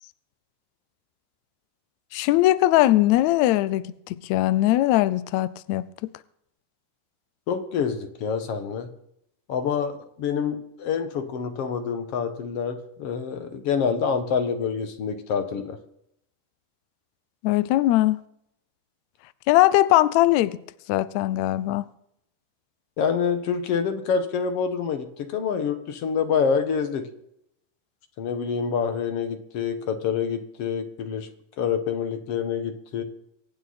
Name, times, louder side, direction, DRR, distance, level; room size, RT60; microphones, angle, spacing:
voice 1, 2.1-6.1 17.4-18.2 19.5-20.6 20.9-21.9, left 15 dB, 80° left, 1.7 m, -20 dB
voice 2, 7.5-8.9 9.5-15.8 23.0-27.1 28.2-31.3 31.6-33.0, left 6 dB, 55° left, 1.8 m, -27 dB
25.0 x 8.9 x 4.2 m
omnidirectional pair, 3.9 m